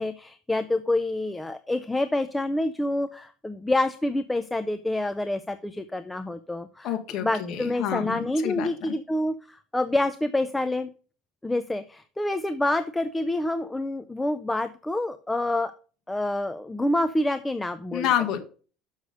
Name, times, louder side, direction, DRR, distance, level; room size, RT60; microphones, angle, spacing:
voice 1, 0.0-6.9 7.2-10.9 11.4-15.7 16.1-18.1, left 1 dB, 10° left, 11 dB, 0.4 m, -27 dB
voice 2, 6.8-8.9 17.9-18.4, left 10 dB, 55° left, 4 dB, 1.5 m, -28 dB
6.6 x 6.3 x 5.2 m, 0.39 s
cardioid pair, 130°, 0 cm